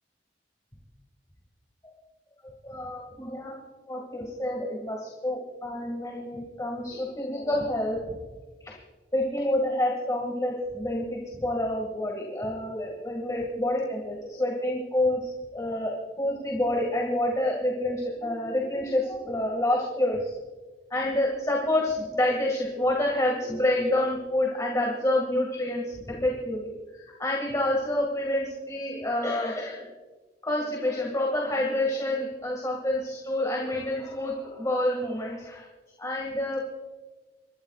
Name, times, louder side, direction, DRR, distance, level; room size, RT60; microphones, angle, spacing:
voice 1, 2.4-3.5 3.8-8.0 8.6-8.8 9.1-20.3 20.9-26.7 27.2-29.9 30.4-35.7 36.0-36.6, left 1 dB, 20° left, -2 dB, 2.0 m, -28 dB
27.5 x 13.5 x 2.4 m, 1.3 s
head